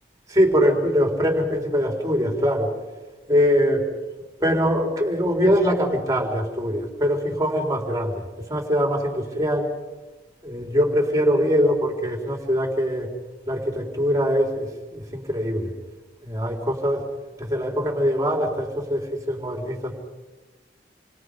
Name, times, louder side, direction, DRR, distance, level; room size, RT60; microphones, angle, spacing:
voice 1, 0.3-2.7 3.3-3.8 4.4-9.7 10.4-13.1 13.5-15.7 16.2-17.0 17.4-19.9, equal, 20° right, 2 dB, 4.1 m, -22 dB
28.0 x 25.5 x 5.2 m, 1.2 s
head